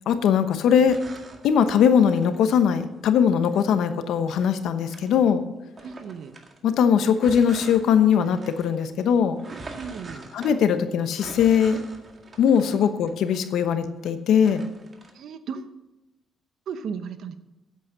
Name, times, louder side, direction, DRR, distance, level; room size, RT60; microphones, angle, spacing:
voice 1, 0.1-1.0 1.4-5.4 6.6-9.4 10.3-11.8 12.4-14.6, left 7 dB, 80° left, 10 dB, 1.0 m, -20 dB
sound 1, 0.9-2.9 3.5-5.3 5.8-14.1 14.4-15.1, right 3 dB, 35° right, 1.9 m, -44 dB
voice 2, 5.8-6.3 9.7-10.3 15.1-15.7 16.7-17.4, right 6 dB, 70° right, 10 dB, 0.9 m, -35 dB
8.5 x 8.2 x 7.8 m, 0.98 s
cardioid pair, 90°, 0 cm